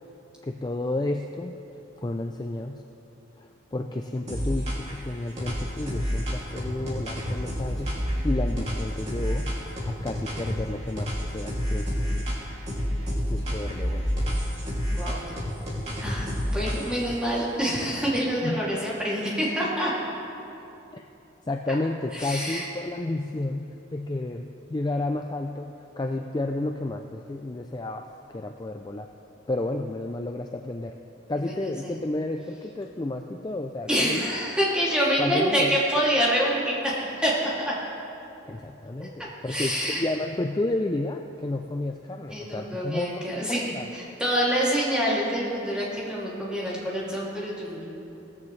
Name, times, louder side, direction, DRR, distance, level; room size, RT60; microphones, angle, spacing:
voice 1, 0.4-1.6 2.0-2.8 3.4-9.5 9.9-12.2 13.3-14.1 18.4-18.6 20.9-21.0 21.5-23.7 23.9-29.1 29.5-31.0 31.3-34.2 35.2-35.8 38.5-43.9, left 2 dB, 20° left, 4 dB, 0.3 m, -31 dB
sound 1, 4.3-5.0 5.4-10.6 11.0-12.4 12.7-17.1, equal, 30° right, 2.5 m, -29 dB
voice 2, 14.9-15.3 16.0-19.9 22.1-22.6 31.4-32.0 33.9-37.7 39.0-40.0 42.3-47.8, equal, 5° right, -7 dB, 2.5 m, -26 dB
17.5 x 14.5 x 3.2 m, 2.9 s
head